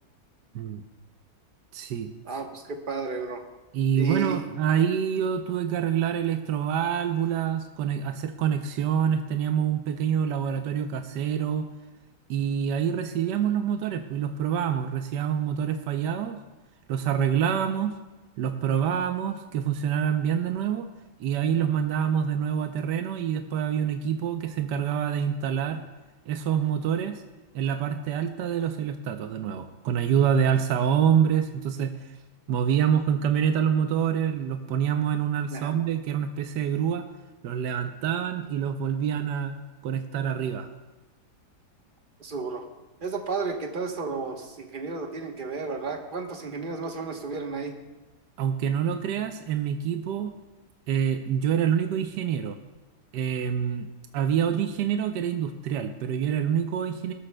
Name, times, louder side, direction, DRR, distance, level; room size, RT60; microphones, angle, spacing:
voice 1, 1.7-2.1 3.7-11.7 12.3-16.4 16.9-18.0 18.4-20.9 21.2-25.8 26.3-27.2 27.5-31.9 32.5-37.0 37.4-39.6 39.8-40.7 48.4-50.3 50.9-52.6 53.1-53.9 54.1-57.1, right 8 dB, 85° right, 7 dB, 1.3 m, -26 dB
voice 2, 2.2-3.4 4.0-4.4 35.5-35.8 42.2-42.6 43.0-47.8, right 4 dB, 35° right, 4 dB, 1.0 m, -32 dB
19.5 x 12.5 x 2.2 m, 1.1 s
omnidirectional pair, 1.8 m